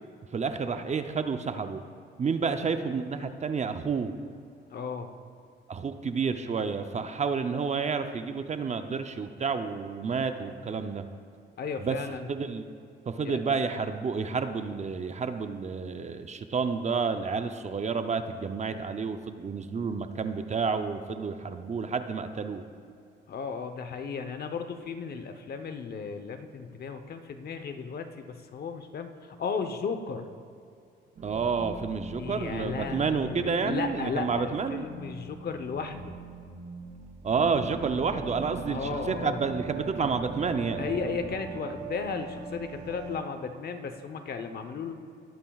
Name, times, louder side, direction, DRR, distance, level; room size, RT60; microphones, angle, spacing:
voice 1, 0.3-1.8 2.2-4.1 5.7-11.1 11.8-12.0 12.3-12.7 13.1-22.6 31.2-34.9 37.2-40.9, right 5 dB, 35° right, 8 dB, 0.6 m, -30 dB
voice 2, 4.7-5.1 11.6-12.3 13.2-13.3 23.3-30.3 32.2-36.2 38.7-39.4 40.8-44.9, left 5 dB, 50° left, 7 dB, 0.9 m, -35 dB
sound 1, 31.2-43.2, right 4 dB, 60° right, 2.0 m, -40 dB
19.5 x 8.9 x 2.4 m, 2.5 s
cardioid pair, 90°, 20 cm